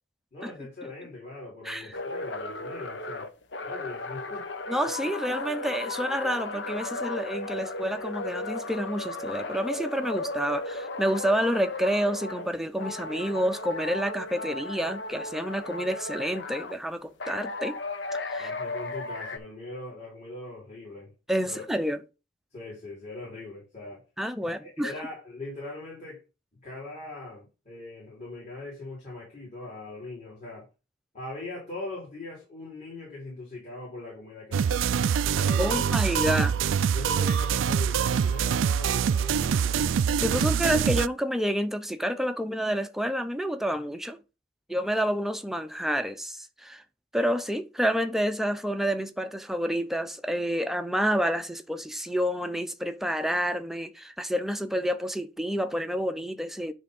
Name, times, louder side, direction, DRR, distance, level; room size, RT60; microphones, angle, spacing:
voice 1, 0.3-3.3 3.6-4.5 18.4-21.1 21.4-21.8 22.5-24.0 24.4-26.2 26.6-30.7 31.1-34.8 35.4-35.9 36.9-39.9 40.4-40.5, left 2 dB, 40° left, 3.9 m, -41 dB
sound 1, 1.9-12.5 12.8-16.8 17.2-19.4, left 2 dB, 65° left, 1.0 m, -35 dB
voice 2, 4.7-17.8 18.3-18.5 21.3-22.0 24.2-24.9 35.6-36.6 40.2-44.2 44.7-46.8 47.1-56.7, equal, ahead, 0.6 m, -29 dB
sound 2, 34.5-41.1, right 7 dB, 85° right, 0.4 m, -25 dB
10.0 x 3.5 x 5.3 m
head